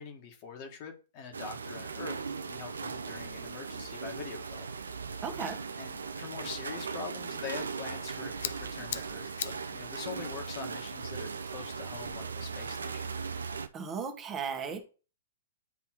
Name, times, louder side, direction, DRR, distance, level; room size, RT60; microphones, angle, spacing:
voice 1, 0.0-2.2 2.5-4.8 5.8-13.2, left 6 dB, 45° left, 4 dB, 1.5 m, -44 dB
sound 1, 1.3-13.7, right 5 dB, 85° right, 0.5 m, -38 dB
voice 2, 5.2-5.6 13.7-14.8, right 6 dB, 25° right, 6 dB, 1.1 m, -36 dB
sound 2, 7.9-12.6, left 9 dB, 65° left, 0.5 m, -44 dB
9.7 x 3.4 x 3.0 m, 0.35 s
hypercardioid pair, 120°, 0 cm